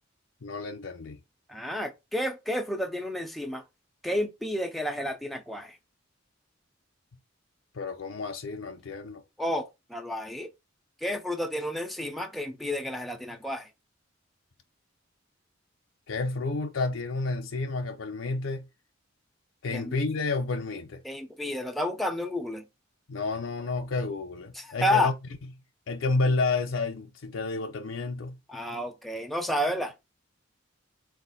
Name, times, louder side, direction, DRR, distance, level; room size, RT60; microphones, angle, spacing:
voice 1, 0.4-1.2 7.7-9.2 16.1-18.6 19.6-21.0 23.1-25.1 25.9-28.4, left 3 dB, 85° left, 0.6 m, -30 dB
voice 2, 1.5-3.6 4.0-5.8 9.4-10.5 11.0-13.7 19.7-20.0 21.0-22.6 24.6-25.1 28.5-29.9, left 1 dB, ahead, 0.5 m, -31 dB
4.0 x 2.4 x 4.0 m
head